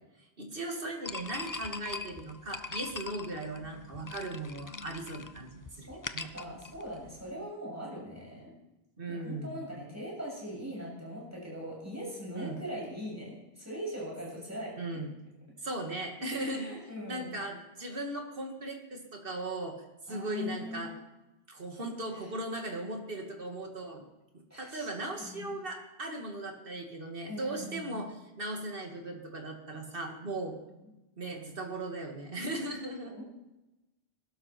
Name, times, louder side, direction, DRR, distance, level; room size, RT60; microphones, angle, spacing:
voice 1, 0.4-5.9 6.1-6.3 9.0-9.7 12.3-12.6 14.8-15.2 15.6-16.7 17.1-19.7 20.1-20.9 21.5-24.0 24.6-30.6 31.2-33.1, right 2 dB, 60° right, 2 dB, 2.5 m, -38 dB
sound 1, 1.0-7.3, left 4 dB, 25° left, 0.5 m, -42 dB
voice 2, 6.3-8.5 9.1-14.8 16.2-17.4 20.1-20.9 22.1-22.3 24.5-24.9 25.2-25.5 27.3-28.0 33.0-33.2, equal, 15° right, -3 dB, 6.8 m, -41 dB
20.5 x 12.5 x 4.5 m, 0.99 s
omnidirectional pair, 1.0 m